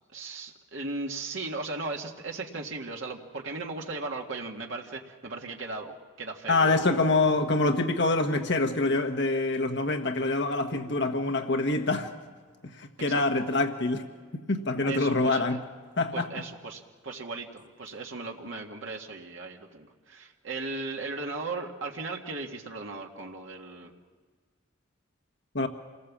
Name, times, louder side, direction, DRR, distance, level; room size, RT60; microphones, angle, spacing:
voice 1, 0.1-7.1 13.1-13.2 14.9-15.6 16.1-23.9, right 3 dB, 75° right, 1 dB, 2.0 m, -37 dB
voice 2, 6.5-12.1 12.8-14.0 14.5-15.6 16.0-16.3 25.5-25.7, left 2 dB, 60° left, 5 dB, 1.3 m, -25 dB
27.5 x 19.5 x 7.4 m, 1.5 s
head